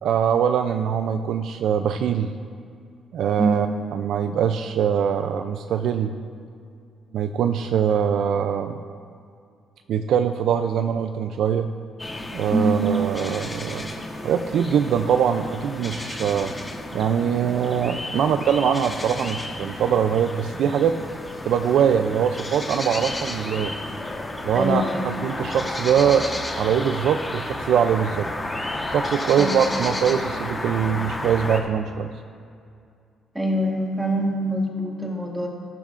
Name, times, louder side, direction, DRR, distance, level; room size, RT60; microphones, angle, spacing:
voice 1, 0.0-2.3 3.1-3.7 3.9-6.2 7.1-8.8 9.9-11.7 12.3-13.9 14.2-16.5 16.9-21.0 21.4-23.7 24.4-26.3 26.6-28.3 28.9-32.1, right 8 dB, 75° right, 7 dB, 0.4 m, -22 dB
sound 1, 12.0-31.6, left 1 dB, 20° left, 1.2 m, -32 dB
voice 2, 12.5-12.8 24.5-25.0 29.4-29.8 33.3-35.5, right 1 dB, 10° right, -2 dB, 2.1 m, -24 dB
15.0 x 10.5 x 2.5 m, 2.4 s
cardioid pair, 90°, 0 cm